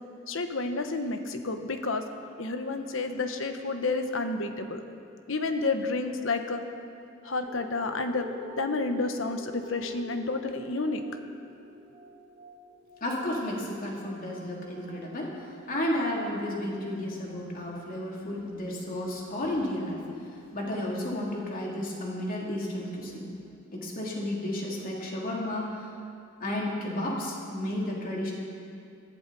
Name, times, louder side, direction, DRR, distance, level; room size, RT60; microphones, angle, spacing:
voice 1, 0.3-2.0 2.4-4.8 5.3-6.6 7.2-8.3 8.6-11.0, left 3 dB, 70° left, 6 dB, 1.1 m, -30 dB
sound 1, 7.5-16.4 17.0-17.1, equal, 55° right, 2.7 m, -48 dB
voice 2, 13.0-15.3 15.7-23.3 23.7-25.9 26.4-28.3, left 1 dB, 45° left, -3 dB, 3.0 m, -32 dB
20.5 x 15.5 x 4.2 m, 2.4 s
head